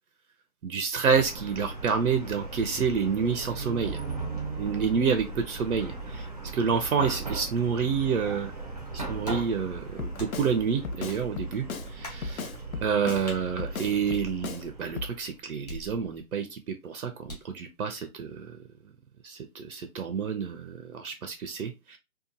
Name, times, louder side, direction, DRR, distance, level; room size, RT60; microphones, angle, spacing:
voice 1, 0.6-4.0 4.6-6.3 6.5-8.5 8.9-11.7 12.0-12.5 12.8-18.5 19.2-22.0, right 6 dB, 75° right, 7 dB, 0.6 m, -28 dB
Chatter / Car passing by / Traffic noise roadway noise, 1.1-15.4, right 3 dB, 30° right, 0.4 m, -38 dB
sound 1, 9.2-9.5 10.2-10.5 11.1-11.2 12.0-12.3 13.3-13.4 14.1-14.8 15.7-16.3 17.3-17.6, equal, 30° left, 0.7 m, -43 dB
Drum kit, 10.0-10.5 10.8-11.9 12.2-13.3 13.6-14.6 15.0-15.1, left 4 dB, 70° left, 0.6 m, -35 dB
2.8 x 2.2 x 2.5 m, 0.24 s
figure-of-eight pair, 155°, 44 cm